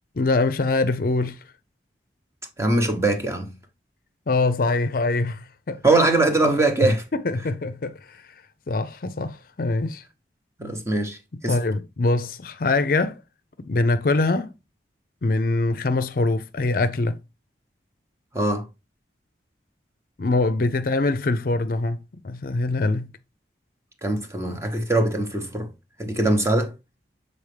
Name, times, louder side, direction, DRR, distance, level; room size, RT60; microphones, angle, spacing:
voice 1, 0.2-1.4 4.3-5.8 7.1-8.2 8.7-10.0 11.5-13.2 13.7-14.5 15.2-17.2 20.2-22.0 22.2-23.1, left 3 dB, 50° left, 0.5 m, -23 dB
voice 2, 2.6-3.5 5.8-7.0 10.6-11.2 11.4-11.6 18.3-18.7 24.0-25.7 26.0-26.7, right 2 dB, 15° right, 0.9 m, -22 dB
7.2 x 4.1 x 3.2 m
head